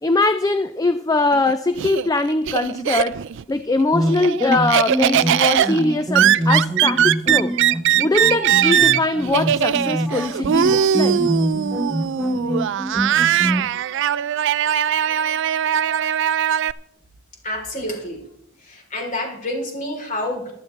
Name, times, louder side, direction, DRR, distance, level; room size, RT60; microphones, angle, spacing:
voice 1, 0.0-3.2 3.5-7.5 8.0-11.2, left 2 dB, 15° left, 11 dB, 0.4 m, -21 dB
Laughter, 1.3-3.4 3.8-16.7, right 10 dB, 60° right, 0.4 m, -20 dB
sound 1, 3.9-13.7, right 1 dB, ahead, 1.0 m, -25 dB
voice 2, 17.4-18.3 18.6-20.5, left 1 dB, 35° left, 1 dB, 3.7 m, -28 dB
15.5 x 12.0 x 3.3 m, 0.74 s
head